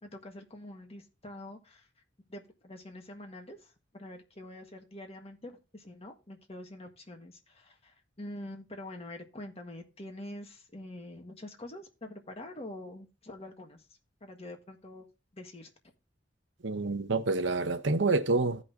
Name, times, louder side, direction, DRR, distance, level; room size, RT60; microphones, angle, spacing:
voice 1, 0.0-1.9 2.3-13.8 14.2-15.1 15.3-15.7, left 1 dB, 35° left, 1.6 m, -45 dB
voice 2, 16.6-18.6, right 3 dB, 70° right, 0.8 m, -28 dB
15.0 x 5.5 x 2.8 m
head